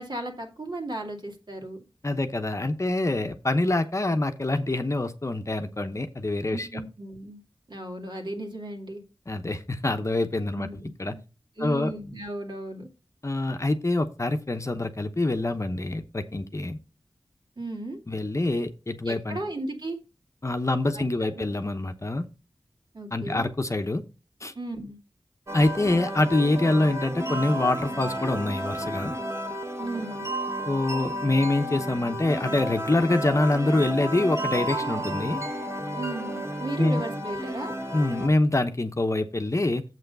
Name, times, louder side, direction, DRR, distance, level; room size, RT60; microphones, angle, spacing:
voice 1, 0.0-1.8 6.5-7.4 7.7-9.0 10.6-10.8 11.1-11.2 11.6-12.9 17.6-18.0 19.0-20.0 20.9-21.1 21.3-21.5 22.9-23.5 24.6-25.0 29.8-30.3 36.0-37.7, right 2 dB, 60° right, 2 dB, 2.4 m, -35 dB
voice 2, 2.0-6.8 9.3-10.7 11.0-11.2 11.6-11.9 13.2-16.8 18.1-19.4 20.4-22.3 23.1-24.0 24.4-24.5 25.5-29.1 30.7-35.4 36.8-37.0 37.9-39.8, left 2 dB, 35° left, 7 dB, 0.9 m, -25 dB
sound 1, 25.5-38.3, right 1 dB, 35° right, 1.8 m, -32 dB
7.6 x 5.8 x 5.3 m, 0.31 s
wide cardioid pair, 70°, 9 cm